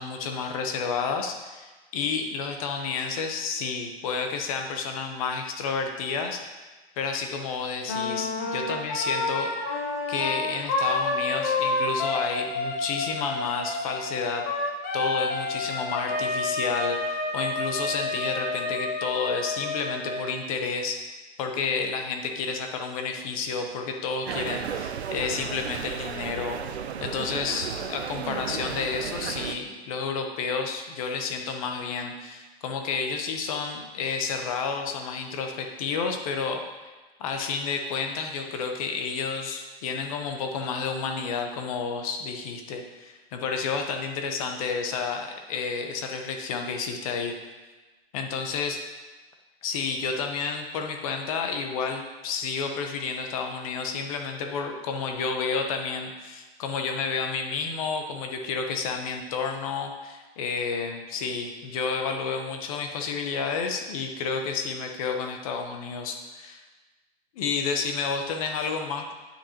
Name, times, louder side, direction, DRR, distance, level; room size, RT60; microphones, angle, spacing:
voice 1, 0.0-6.4 7.0-9.5 10.1-14.4 14.9-21.0 21.4-26.6 27.0-36.6 37.2-47.3 48.1-48.8 49.6-66.6 67.4-69.1, left 5 dB, 35° left, 4 dB, 0.8 m, -30 dB
Wind instrument woodwind instrument, 7.8-20.3, left 2 dB, 15° left, 0.3 m, -29 dB
sound 1, 24.3-29.6, right 7 dB, 90° right, 0.6 m, -34 dB
10.0 x 5.8 x 2.9 m, 1.2 s
hypercardioid pair, 150°, 31 cm